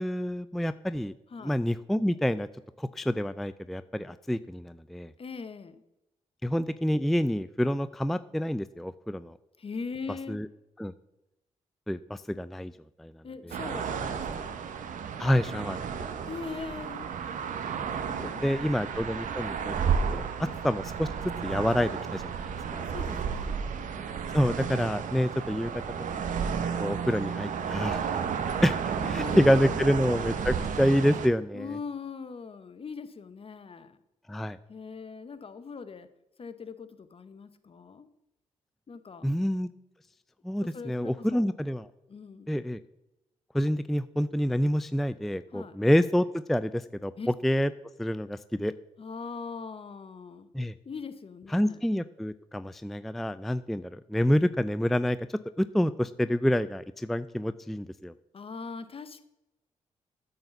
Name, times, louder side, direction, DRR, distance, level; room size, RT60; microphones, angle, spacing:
voice 1, 0.0-1.1 1.4-2.5 2.8-5.1 6.4-9.4 10.3-10.5 10.8-10.9 11.9-12.7 13.0-13.1 15.2-16.1 18.2-19.8 20.1-22.8 24.3-25.7 26.1-26.2 26.8-28.1 28.6-31.8 34.3-34.6 39.2-39.7 40.4-41.9 42.5-42.8 43.5-47.7 48.0-48.7 50.5-50.7 51.5-55.2 55.6-58.1, equal, ahead, 14 dB, 0.3 m, -27 dB
voice 2, 5.2-5.8 9.6-10.4 13.2-14.5 16.2-17.1 18.1-18.7 20.3-20.6 22.8-23.6 29.0-29.8 31.5-34.0 34.7-36.1 36.4-38.1 38.9-39.3 40.6-41.5 42.1-42.6 45.5-45.8 47.2-47.3 49.0-50.5 50.8-51.8 58.3-59.2, left 5 dB, 45° left, 12 dB, 0.8 m, -41 dB
sound 1, 13.5-31.3, right 6 dB, 70° right, 0.8 m, -32 dB
8.8 x 4.0 x 6.9 m, 0.91 s
supercardioid pair, 50°, 14 cm